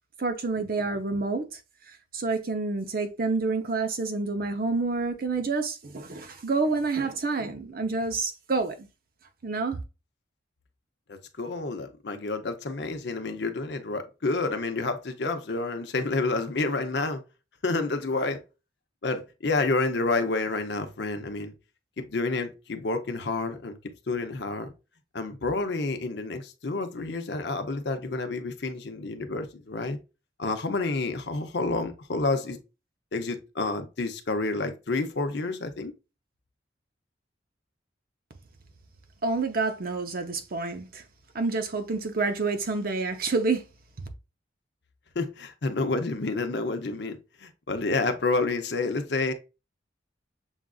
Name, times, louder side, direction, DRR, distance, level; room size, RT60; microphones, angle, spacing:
voice 1, 0.2-1.4 2.1-8.7 9.4-9.8 39.2-40.9 41.3-43.6, right 3 dB, 50° right, 0.7 m, -28 dB
voice 2, 11.1-17.2 17.6-18.4 19.0-21.5 22.0-23.8 24.1-24.7 25.1-30.0 30.4-32.6 33.1-35.9 45.1-49.3, left 3 dB, 60° left, 0.6 m, -29 dB
7.1 x 2.5 x 2.3 m
head